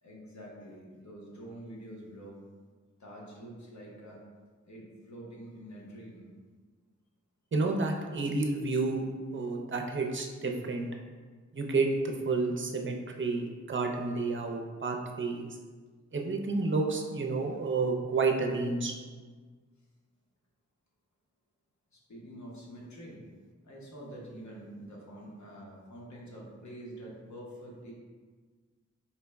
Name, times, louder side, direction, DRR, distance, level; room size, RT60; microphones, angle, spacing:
voice 1, 0.0-2.4 3.0-4.2 4.6-6.3 21.9-23.2 23.6-27.9, right 1 dB, 70° left, -3 dB, 0.9 m, -46 dB
voice 2, 7.5-9.1 9.3-10.9 11.5-15.5 16.1-18.9, right 3 dB, 40° right, 2 dB, 0.5 m, -30 dB
4.3 x 2.1 x 3.4 m, 1.5 s
wide cardioid pair, 60°, 30 cm